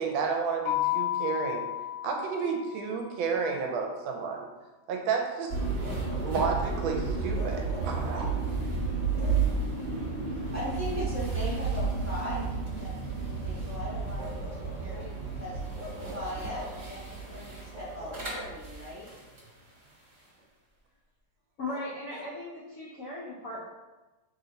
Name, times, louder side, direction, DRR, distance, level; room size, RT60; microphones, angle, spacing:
voice 1, 0.0-1.6 2.0-4.5 4.9-5.9 6.2-8.3, right 5 dB, 75° right, 2 dB, 1.3 m, -31 dB
Keyboard (musical), 0.7-3.2, left 14 dB, 90° left, 1.6 m, -32 dB
sound 1, 5.5-19.5, right 4 dB, 45° right, 1.0 m, -32 dB
Bark, 5.8-6.5 7.3-8.0 9.1-9.5 11.2-11.4 14.1-15.1 15.7-16.9 17.7-19.0 21.6-22.4, equal, 60° right, 0.4 m, -44 dB
voice 2, 10.5-15.6 16.0-19.1, left 1 dB, 15° left, -9 dB, 0.7 m, -39 dB
voice 3, 21.6-23.6, left 2 dB, 75° left, -6 dB, 0.8 m, -38 dB
3.3 x 2.8 x 3.9 m, 1.2 s
omnidirectional pair, 2.3 m